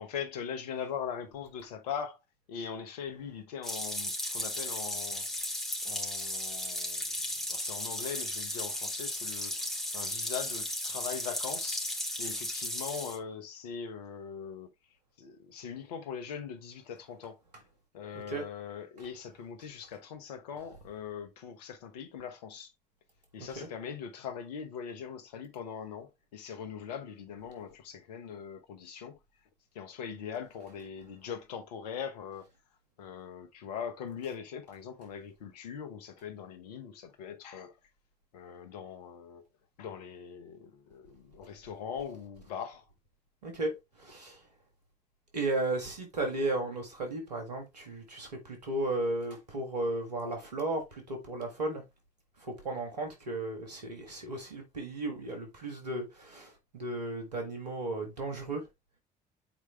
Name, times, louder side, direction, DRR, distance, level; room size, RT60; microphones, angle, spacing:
voice 1, 0.0-2.2 2.5-5.3 5.8-7.2 7.5-9.7 9.9-11.9 12.2-14.7 15.2-17.4 17.9-22.7 23.3-29.2 29.7-32.5 33.0-37.8 38.3-39.4 39.8-42.8, left 7 dB, 80° left, 1.1 m, -41 dB
sound 1, 3.6-13.2, left 1 dB, ahead, 2.6 m, -35 dB
voice 2, 43.4-44.4 45.3-51.8 52.4-58.7, right 2 dB, 90° right, 1.9 m, -35 dB
7.3 x 4.8 x 3.1 m
figure-of-eight pair, 50°, 20 cm